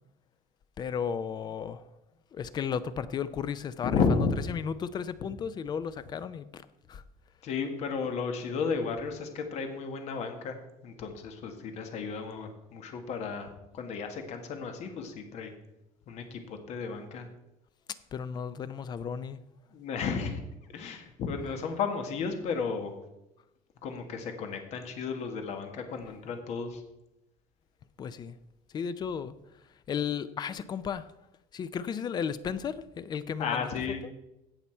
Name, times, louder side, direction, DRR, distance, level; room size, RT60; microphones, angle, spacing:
voice 1, 0.8-1.8 2.3-4.0 4.5-6.6 6.9-7.0 18.1-19.4 28.0-28.3 28.7-29.3 29.9-31.0 31.5-33.7, left 7 dB, 30° left, 0.5 m, -34 dB
voice 2, 3.8-4.3 7.4-10.6 10.8-13.5 13.7-15.5 16.1-17.3 19.7-20.4 20.7-22.9 23.8-26.8 33.4-34.0, left 5 dB, 50° left, 1.6 m, -33 dB
17.0 x 5.7 x 4.5 m
cardioid pair, 165°, 15 cm